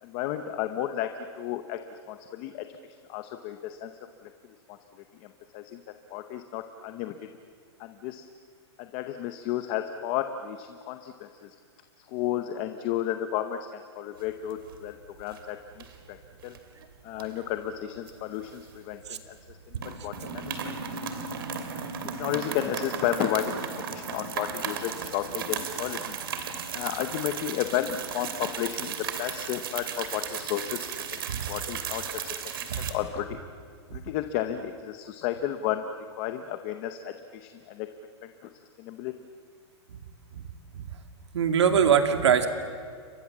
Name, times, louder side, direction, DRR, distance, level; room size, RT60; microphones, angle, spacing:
voice 1, 0.0-1.1 1.3-2.7 3.1-3.9 4.2-4.3 4.7-4.8 5.2-5.8 6.1-7.1 7.8-8.3 8.8-11.6 12.1-16.2 16.4-16.6 17.0-20.6 22.2-26.2 26.7-30.9 31.5-32.3 32.8-33.3 33.9-35.8 36.2-37.9 38.2-38.5 38.8-39.1, left 11 dB, 25° left, 8 dB, 0.8 m, -33 dB
sound 1, 14.2-14.9 15.2-15.4 15.8-16.6 17.2-19.1 19.4-19.5 19.8-32.9, right 7 dB, 55° right, 2.7 m, -35 dB
voice 2, 41.3-42.5, right 7 dB, 75° right, 7 dB, 2.6 m, -22 dB
29.5 x 24.5 x 7.4 m, 2.1 s
supercardioid pair, 180°, 15 cm